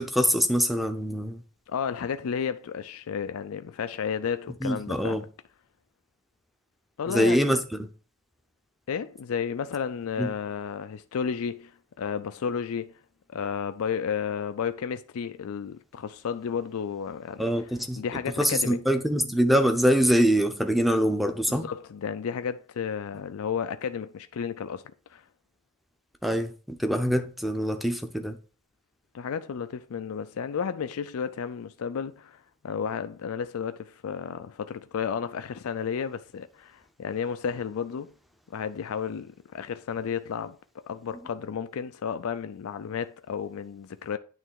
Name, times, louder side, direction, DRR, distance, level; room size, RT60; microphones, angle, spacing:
voice 1, 0.0-1.4 4.6-5.2 7.1-7.9 10.2-10.3 17.4-18.0 18.4-21.7 26.2-28.4, equal, ahead, 0.6 m, -24 dB
voice 2, 1.7-5.3 7.0-7.6 8.9-11.7 12.0-12.9 13.3-17.5 18.0-18.8 21.5-24.8 25.1-25.2 29.1-38.1 38.5-40.6 40.8-44.2, left 7 dB, 75° left, 0.4 m, -32 dB
8.9 x 3.2 x 4.7 m
head